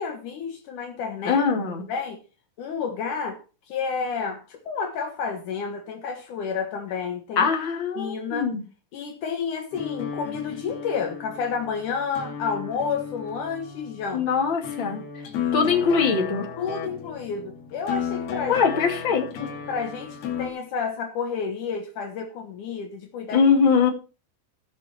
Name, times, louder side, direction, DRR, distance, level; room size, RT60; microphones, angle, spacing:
voice 1, 0.0-1.4 1.8-2.2 2.6-3.4 3.7-7.5 8.0-8.5 8.9-14.3 16.6-18.6 19.0-19.1 19.7-23.5, left 5 dB, 85° left, 1.8 m, -30 dB
voice 2, 1.2-1.8 7.4-8.6 14.1-15.0 15.5-16.5 18.5-19.5 23.3-23.9, left 5 dB, 35° left, 2.1 m, -22 dB
sound 1, 9.7-20.5, left 7 dB, 60° left, 3.6 m, -34 dB
17.0 x 6.3 x 4.4 m
omnidirectional pair, 5.7 m